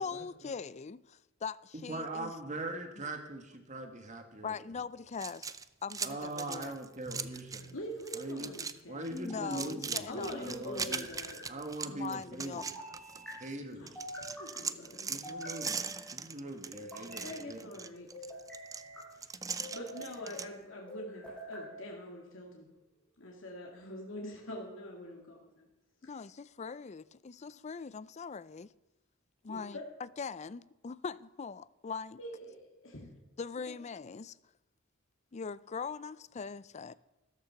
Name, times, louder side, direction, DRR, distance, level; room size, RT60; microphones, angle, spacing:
voice 1, 0.0-2.3 4.4-5.5 5.8-6.7 9.2-10.8 11.8-12.6 26.0-28.7 29.4-32.2 33.4-34.4 35.3-36.9, left 5 dB, 35° left, 0.4 m, -41 dB
voice 2, 1.7-4.5 6.0-7.8 8.1-8.5 8.9-11.1 11.5-12.7 13.4-13.9 15.1-15.8 16.1-17.6, right 2 dB, 40° right, 1.9 m, -41 dB
sound 1, 5.1-7.7 8.0-8.8 9.0-13.5 13.9-20.5, right 5 dB, 15° right, 0.5 m, -40 dB
sound 2, 7.1-7.7 9.1-9.9 10.7-11.5 12.6-13.3 13.9-14.6 15.2-16.1 16.7-17.4 18.1-19.0 19.6-20.2 20.9-21.7, left 1 dB, 5° left, 7.1 m, -46 dB
voice 3, 7.7-9.1 10.1-11.4 13.7-15.1 17.2-18.1 19.1-19.3 19.7-22.7 23.2-25.7 26.0-26.1 29.5-29.8 32.2-33.1, equal, 70° left, 2.3 m, -44 dB
13.5 x 13.5 x 5.9 m
head